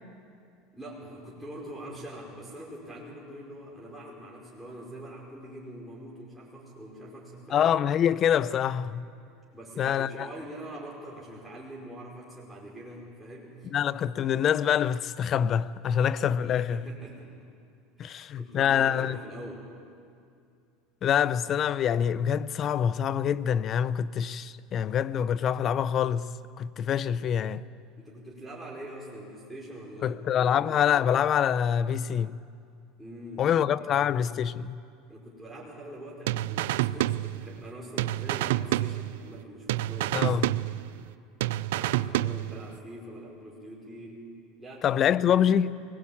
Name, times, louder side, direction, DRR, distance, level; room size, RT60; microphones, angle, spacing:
voice 1, 0.7-7.7 9.5-13.7 16.4-17.3 18.0-19.7 28.0-30.7 33.0-33.7 35.1-40.7 41.7-44.3 44.6-45.2, right 1 dB, 5° right, 5.2 m, -44 dB
voice 2, 7.5-9.1 9.8-10.3 13.7-16.8 18.0-19.2 21.0-26.3 26.6-27.6 30.0-32.3 33.4-34.8 40.1-40.4 44.8-45.8, left 9 dB, 40° left, 0.7 m, -25 dB
sound 1, 36.3-37.7 38.0-39.4 39.7-41.1 41.4-42.7, right 15 dB, 85° right, 0.5 m, -29 dB
24.0 x 20.0 x 8.7 m
supercardioid pair, 120°, 0 cm